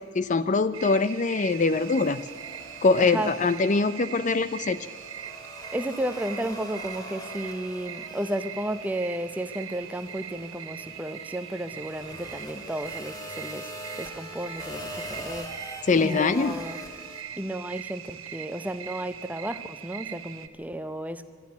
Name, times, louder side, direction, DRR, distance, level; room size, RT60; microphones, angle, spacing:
voice 1, 0.1-2.3 2.8-4.8 15.9-16.6, left 4 dB, 35° left, 14 dB, 0.4 m, -23 dB
sound 1, 0.7-20.5, right 9 dB, 65° right, 1.0 m, -41 dB
sound 2, 1.5-4.1 4.4-17.2, equal, 15° left, 2.0 m, -43 dB
voice 2, 3.0-3.3 5.7-13.7 14.0-16.8 17.4-21.2, right 1 dB, 5° right, 11 dB, 0.6 m, -33 dB
23.0 x 12.5 x 9.4 m, 2.1 s
head